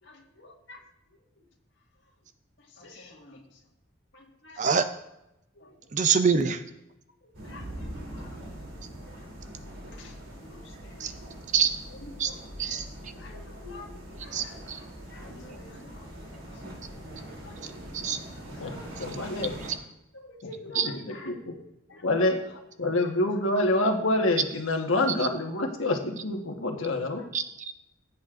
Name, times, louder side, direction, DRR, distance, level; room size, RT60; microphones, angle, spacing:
voice 1, 0.0-0.8 2.8-3.4 4.1-4.9 5.6-5.7 7.4-8.4 9.1-9.2 9.8-10.1 10.4-11.1 12.0-12.9 13.1-13.9 14.2-14.5 15.1-16.6 17.4-17.7 18.5-19.0 20.1-21.3 21.9-22.3, left 2 dB, 65° left, -2 dB, 1.8 m, -48 dB
voice 2, 5.9-6.6 11.0-11.1 11.5-11.7 12.2-12.3 12.6-12.8 14.3-14.8 18.0-18.2 20.8-20.9 27.3-27.7, right 6 dB, 35° right, 10 dB, 0.5 m, -25 dB
sound 1, 7.3-19.7, equal, 85° right, 3.1 m, -42 dB
voice 3, 19.0-19.6 20.7-21.5 22.0-22.4 22.8-27.2, left 2 dB, 85° left, 3 dB, 1.3 m, -27 dB
16.0 x 8.5 x 2.5 m, 0.85 s
head